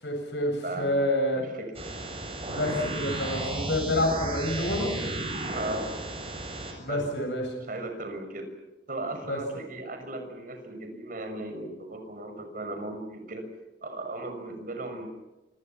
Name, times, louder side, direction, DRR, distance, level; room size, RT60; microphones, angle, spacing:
voice 1, 0.0-1.4 2.5-4.9 6.8-7.4 9.3-9.4, left 1 dB, 90° left, 2 dB, 7.8 m, -28 dB
voice 2, 0.6-1.1 1.3-1.9 5.5-6.0 6.9-7.0 7.7-8.5 8.9-13.4 13.8-15.1, right 2 dB, 50° right, 6 dB, 6.4 m, -36 dB
sound 1, 1.8-6.7, right 2 dB, 35° right, 7.9 m, -34 dB
29.0 x 27.0 x 6.0 m, 1.0 s
head